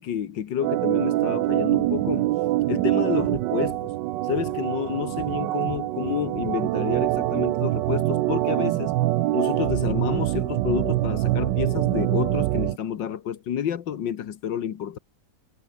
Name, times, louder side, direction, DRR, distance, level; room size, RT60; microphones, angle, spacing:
voice 1, 0.0-2.3 2.7-3.9 4.3-8.9 9.3-15.0, left 9 dB, 90° left, 2.0 m, -29 dB
Organ, 0.6-12.8, right 16 dB, 80° right, 1.3 m, -24 dB
omnidirectional pair, 1.9 m